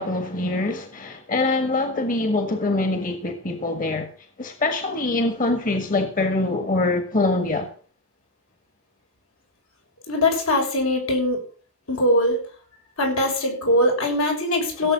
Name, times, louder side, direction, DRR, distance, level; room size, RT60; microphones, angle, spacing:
voice 1, 0.0-4.1 4.4-7.7 14.8-14.9, left 2 dB, 40° left, 1.6 m, -24 dB
voice 2, 10.1-11.4 11.9-12.4 13.0-14.9, left 1 dB, 80° left, 6.0 m, -21 dB
16.5 x 7.6 x 6.2 m
head